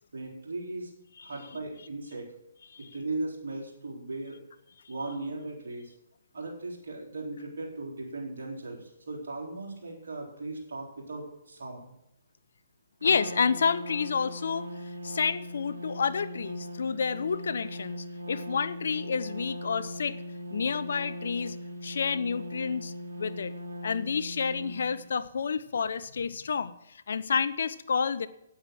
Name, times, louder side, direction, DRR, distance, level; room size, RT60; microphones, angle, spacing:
voice 1, 0.1-0.9 1.2-2.3 2.8-4.4 4.9-5.9 6.3-11.9, right 2 dB, 70° right, -1 dB, 4.1 m, -37 dB
voice 2, 13.0-14.7 15.0-20.2 20.5-21.6 21.8-23.5 23.8-28.3, left 6 dB, 65° left, 15 dB, 0.7 m, -29 dB
Trumpet, 13.0-25.1, equal, 85° right, 1.8 m, -40 dB
9.4 x 8.7 x 6.2 m, 0.82 s
figure-of-eight pair, 135°, 0 cm